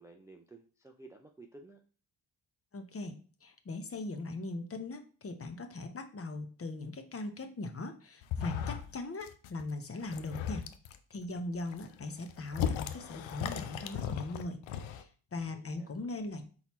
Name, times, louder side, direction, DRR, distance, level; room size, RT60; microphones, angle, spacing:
voice 1, 0.0-1.8 15.4-15.9, right 2 dB, 5° right, 3 dB, 0.4 m, -54 dB
voice 2, 2.7-10.7 11.1-14.6 14.9-16.4, left 2 dB, 30° left, 6 dB, 0.7 m, -40 dB
sound 1, 8.2-9.0 9.2-9.6 10.0-11.0 11.5-15.0, left 9 dB, 65° left, 0.6 m, -37 dB
3.9 x 3.0 x 4.2 m, 0.40 s
supercardioid pair, 65°, 49 cm